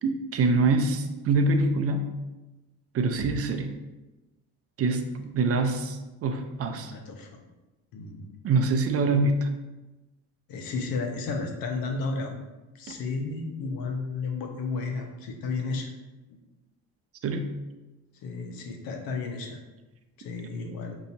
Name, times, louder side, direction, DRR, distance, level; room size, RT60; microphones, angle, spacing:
voice 1, 0.0-2.1 2.9-3.7 4.8-6.9 8.4-9.5 12.9-13.0 17.2-17.5, right 3 dB, 40° right, 6 dB, 0.5 m, -25 dB
voice 2, 6.7-7.4 7.9-8.4 10.5-12.3 12.7-15.9 18.2-19.6 20.2-21.0, left 4 dB, 65° left, 3 dB, 0.9 m, -33 dB
5.5 x 2.8 x 2.6 m, 1.1 s
cardioid pair, 95°, 38 cm